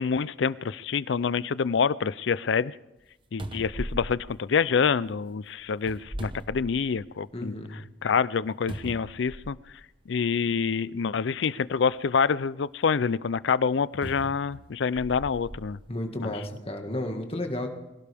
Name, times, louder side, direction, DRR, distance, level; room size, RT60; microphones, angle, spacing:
voice 1, 0.0-2.7 3.3-7.5 8.0-9.6 10.1-15.8 16.2-16.3, left 6 dB, 65° left, 19 dB, 0.4 m, -26 dB
sound 1, 3.0-3.1 3.4-5.1 5.8-7.2 7.6-7.7 8.7-9.8 10.7-10.8 14.0-15.7 16.4-16.5, right 1 dB, 25° right, 1.0 m, -39 dB
voice 2, 7.3-7.8 15.9-17.7, left 1 dB, 30° left, 4 dB, 1.8 m, -32 dB
24.0 x 17.0 x 3.5 m, 0.98 s
head